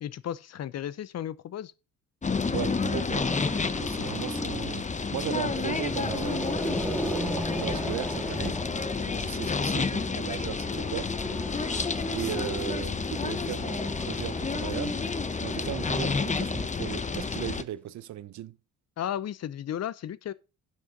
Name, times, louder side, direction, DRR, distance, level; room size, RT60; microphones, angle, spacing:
voice 1, 0.0-1.7 19.0-20.3, left 10 dB, 55° left, 0.8 m, -34 dB
sound 1, 2.2-17.6, left 4 dB, 25° left, 0.9 m, -30 dB
voice 2, 2.5-3.3 3.8-8.6 9.0-11.1 11.5-11.7 12.1-15.0 15.4-18.6, right 13 dB, 70° right, 0.9 m, -37 dB
Growling, 3.1-4.9 5.4-9.6 10.5-17.1, equal, 5° left, 2.1 m, -37 dB
11.5 x 7.6 x 3.8 m
cardioid pair, 90°, 30 cm